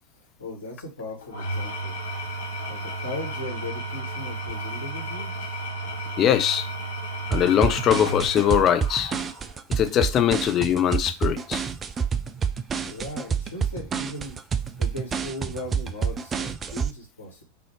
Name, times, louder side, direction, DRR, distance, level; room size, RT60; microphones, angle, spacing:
voice 1, 0.4-2.0 2.7-5.5 12.8-14.4 14.8-17.4, left 1 dB, 80° left, 1.8 m, -37 dB
Engine / Tools, 1.2-9.5, right 1 dB, 65° left, 1.5 m, -33 dB
voice 2, 6.2-6.7 7.3-9.1 9.8-11.6, left 10 dB, 30° left, 0.5 m, -21 dB
sound 1, 7.3-16.9, right 6 dB, 20° right, 0.3 m, -28 dB
5.5 x 2.7 x 3.1 m
figure-of-eight pair, 90°, 0 cm